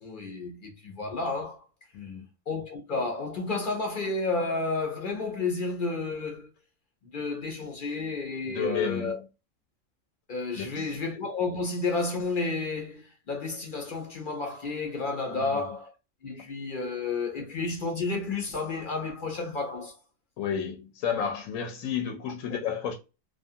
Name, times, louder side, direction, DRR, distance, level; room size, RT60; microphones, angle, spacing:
voice 1, 0.0-1.7 2.5-6.5 7.0-9.2 10.3-15.9 16.2-20.0 22.5-22.6, left 3 dB, 55° left, 0.6 m, -31 dB
voice 2, 1.9-2.3 8.5-9.1 10.6-10.9 15.3-15.6 20.4-22.9, left 7 dB, 80° left, 1.0 m, -31 dB
2.4 x 2.3 x 2.5 m
omnidirectional pair, 1.4 m